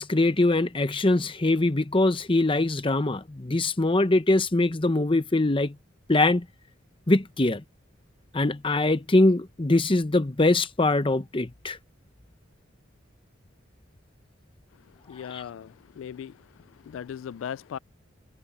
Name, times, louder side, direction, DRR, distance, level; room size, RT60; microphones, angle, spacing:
voice 1, 0.0-5.7 6.1-6.5 7.1-7.6 8.3-11.8 15.3-15.4, left 2 dB, 25° left, 0.9 m, -23 dB
voice 2, 15.1-16.3 16.9-17.8, left 8 dB, 80° left, 0.3 m, -37 dB
head